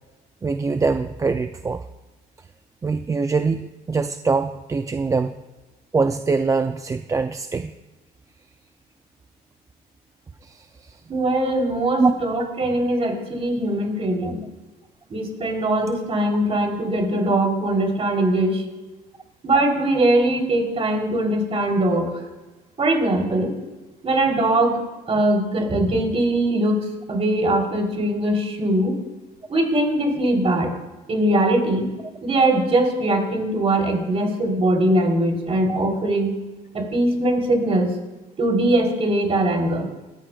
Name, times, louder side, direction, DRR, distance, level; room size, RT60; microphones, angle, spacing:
voice 1, 0.4-1.8 2.8-3.6 3.9-5.3 5.9-7.7 12.0-12.1 14.2-14.3 35.7-35.8, right 4 dB, 20° right, 8 dB, 0.4 m, -22 dB
voice 2, 11.1-14.4 15.1-18.6 19.4-22.1 22.8-23.5 24.0-24.8 25.1-29.0 29.5-30.7 31.1-31.9 32.2-36.3 36.7-38.0 38.4-39.9, right 1 dB, 35° right, 1 dB, 3.6 m, -21 dB
19.0 x 14.5 x 2.4 m, 1.1 s
cardioid pair, 110°, 17 cm